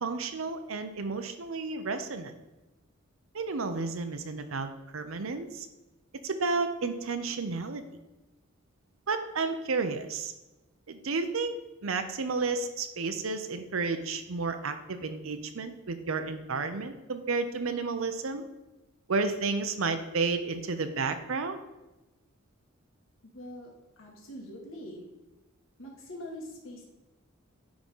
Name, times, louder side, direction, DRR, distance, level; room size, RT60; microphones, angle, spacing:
voice 1, 0.0-2.3 3.3-4.7 4.9-5.7 6.2-7.8 9.1-10.3 10.9-11.5 11.8-18.5 19.1-21.6, right 4 dB, 85° right, 8 dB, 0.7 m, -31 dB
voice 2, 23.2-23.7 24.0-25.1 25.8-26.8, left 1 dB, 75° left, -2 dB, 1.8 m, -43 dB
9.6 x 3.8 x 5.5 m, 1.0 s
head